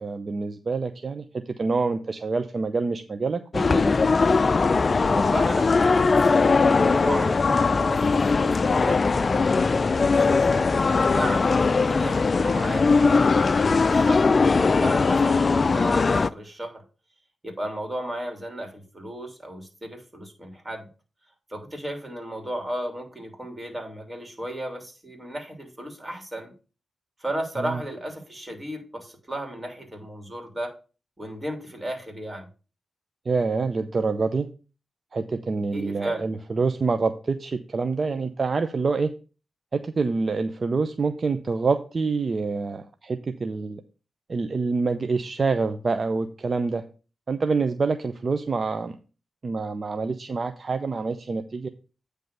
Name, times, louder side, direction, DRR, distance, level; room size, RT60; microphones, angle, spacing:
voice 1, 0.0-1.2 1.6-3.9 27.6-27.8 33.3-34.5 35.1-39.1 39.7-43.8 44.3-46.8 47.3-48.9 49.4-51.7, right 4 dB, 50° right, 9 dB, 0.6 m, -26 dB
sound 1, 3.5-16.3, left 4 dB, 45° left, 0.3 m, -20 dB
voice 2, 5.1-7.4 7.7-9.0 9.9-16.8 17.4-20.9 21.5-26.5 27.2-30.7 31.2-32.5 35.7-36.2, right 1 dB, 25° right, 3 dB, 2.9 m, -34 dB
9.3 x 3.3 x 6.6 m, 0.34 s
cardioid pair, 55°, 0 cm